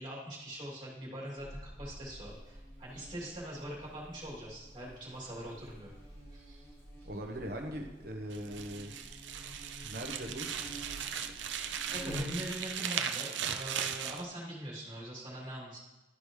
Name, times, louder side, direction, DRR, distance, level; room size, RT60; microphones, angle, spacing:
voice 1, 0.0-5.9 6.3-6.7 7.0-7.1 11.9-15.8, right 1 dB, 25° right, -6 dB, 2.9 m, -43 dB
Buzz, 1.4-12.8, equal, 25° left, 3.1 m, -48 dB
voice 2, 7.0-9.0 9.8-10.5, equal, 55° right, 3 dB, 1.1 m, -40 dB
sound 1, 8.3-14.2, right 8 dB, 90° right, 0.5 m, -37 dB
12.5 x 5.1 x 3.2 m, 1.0 s
head